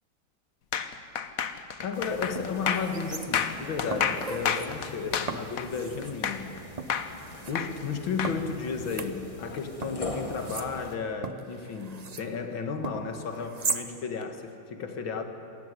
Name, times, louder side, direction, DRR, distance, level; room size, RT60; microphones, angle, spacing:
sound 1, 0.7-6.6 6.9-8.4, left 8 dB, 55° left, 1.2 m, -30 dB
voice 1, 1.8-6.5 7.5-15.2, left 5 dB, 85° left, 6 dB, 2.5 m, -33 dB
sound 2, 1.8-2.0 2.4-3.6 3.9-4.7 5.3-6.2 6.8-7.6 8.2-9.5 9.8-12.3 12.8-13.9 14.2-14.3, right 4 dB, 45° right, 0.5 m, -38 dB
sound 3, 1.9-11.0, left 2 dB, 20° left, 1.7 m, -42 dB
26.5 x 14.5 x 9.8 m, 2.6 s
omnidirectional pair, 2.1 m